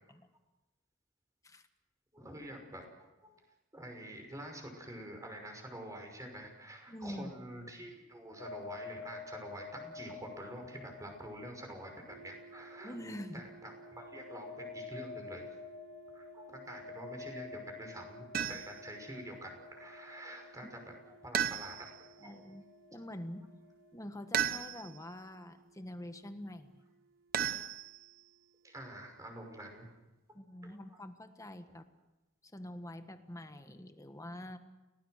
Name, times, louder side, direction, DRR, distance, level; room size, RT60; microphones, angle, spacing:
voice 1, 2.1-3.3 3.7-13.0 13.3-15.5 16.1-20.8 21.1-21.9 22.2-22.4 28.6-29.9 30.6-31.0, right 1 dB, 15° right, 3 dB, 5.9 m, -47 dB
voice 2, 6.9-7.3 12.8-13.4 22.2-22.6 22.9-23.5 23.9-26.8 30.3-31.8 32.4-34.6, left 1 dB, 15° left, 8 dB, 1.5 m, -45 dB
sound 1, 8.4-24.0, left 4 dB, 60° left, 5.9 m, -50 dB
sound 2, 12.1-30.0, right 4 dB, 60° right, 1.9 m, -59 dB
sound 3, 18.3-18.9 21.3-22.1 24.3-25.0 27.3-28.2, right 9 dB, 45° right, 0.9 m, -34 dB
29.5 x 19.0 x 6.5 m, 1.0 s
head